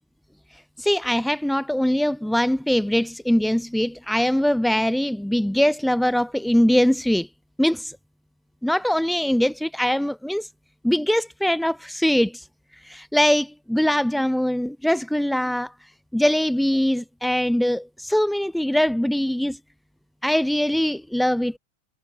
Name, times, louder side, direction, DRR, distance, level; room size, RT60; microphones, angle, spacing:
voice 1, 0.8-7.3 7.6-8.0 8.6-10.5 10.8-12.5 12.8-15.7 16.1-19.6 20.2-21.6, equal, ahead, 0.4 m, -22 dB
figure-of-eight pair, 90°, 0 cm